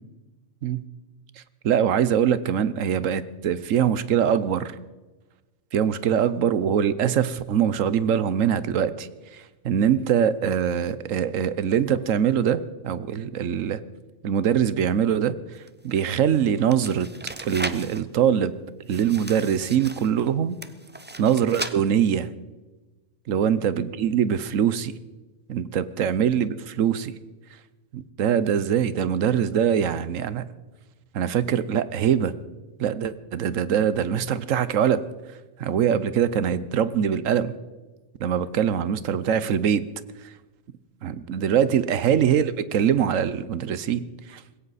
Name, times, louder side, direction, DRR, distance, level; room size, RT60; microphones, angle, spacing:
voice 1, 1.6-4.7 5.7-13.8 14.2-15.4 15.8-17.1 17.4-18.5 18.9-20.6 21.2-22.3 23.3-24.9 25.5-27.1 27.9-30.5 31.1-32.3 32.8-35.0 35.6-37.5 38.2-39.8 41.0-44.0 44.3-44.4, right 8 dB, 75° right, 15 dB, 1.2 m, -23 dB
sound 1, 15.5-18.0 18.9-20.3 20.6-21.7, right 2 dB, 15° right, 0.4 m, -36 dB
20.0 x 17.0 x 4.1 m, 1.2 s
omnidirectional pair, 1.4 m